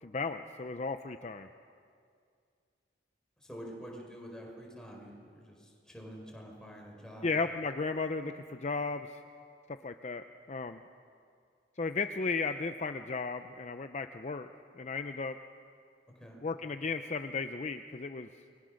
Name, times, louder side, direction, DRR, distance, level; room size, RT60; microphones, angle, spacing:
voice 1, 0.0-1.5 7.2-9.2 9.7-10.8 11.8-14.5 14.8-15.4 16.4-18.3, left 4 dB, 40° left, 8 dB, 0.6 m, -35 dB
voice 2, 3.4-7.3 16.1-16.4, equal, 5° left, -1 dB, 4.7 m, -47 dB
29.0 x 22.0 x 6.4 m, 2.3 s
head